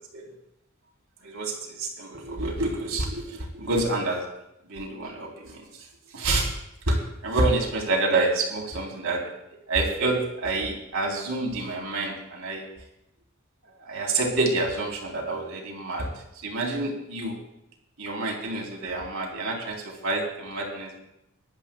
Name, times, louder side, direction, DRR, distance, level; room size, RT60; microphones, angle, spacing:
voice 1, 1.2-4.3 4.7-5.6 6.1-6.5 6.9-9.3 9.7-12.6 13.8-16.1 16.4-17.4 18.0-21.0, right 2 dB, 80° right, -1 dB, 3.3 m, -28 dB
23.5 x 11.5 x 2.2 m, 0.85 s
head